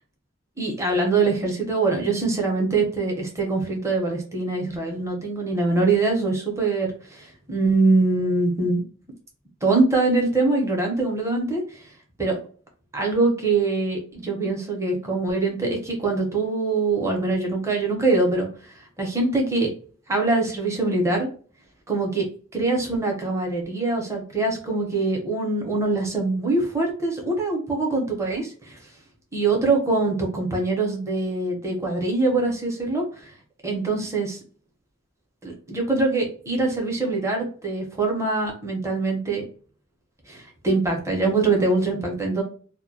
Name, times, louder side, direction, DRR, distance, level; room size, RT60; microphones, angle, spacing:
voice 1, 0.6-8.8 9.6-11.6 12.2-12.4 12.9-18.5 19.0-19.7 20.1-21.3 21.9-22.3 22.5-28.8 29.3-33.3 33.6-34.4 35.4-39.5 40.3-42.4, right 3 dB, 15° right, 0 dB, 0.6 m, -23 dB
2.1 x 2.1 x 2.7 m, 0.42 s
head